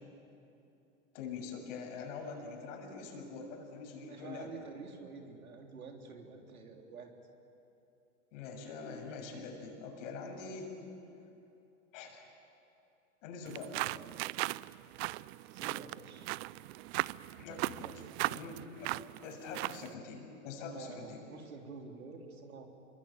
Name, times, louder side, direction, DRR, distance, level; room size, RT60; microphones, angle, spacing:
voice 1, 1.1-4.7 8.3-10.7 11.9-12.2 13.2-14.0 17.4-17.8 18.2-18.9 19.2-21.2, left 4 dB, 60° left, 2 dB, 6.8 m, -44 dB
voice 2, 4.1-7.1 15.5-16.4 17.5-17.9 18.3-18.4 20.8-22.7, right 4 dB, 85° right, 2 dB, 3.7 m, -49 dB
sound 1, 13.5-19.9, right 20 dB, 50° right, 0.5 m, -38 dB
27.0 x 22.5 x 9.3 m, 2.8 s
hypercardioid pair, 100°, 41 cm